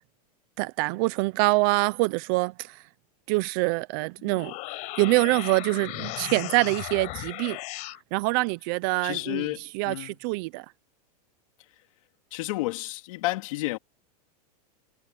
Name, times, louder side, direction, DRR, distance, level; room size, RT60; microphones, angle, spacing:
voice 1, 0.6-2.8 3.3-4.5 5.0-7.6 8.1-10.7, right 24 dB, 30° right, 0.4 m, -25 dB
sound 1, 4.2-8.0, left 23 dB, 35° left, 4.8 m, -36 dB
voice 2, 9.0-10.1 12.3-13.8, left 19 dB, 55° left, 3.4 m, -31 dB
supercardioid pair, 165°, 21 cm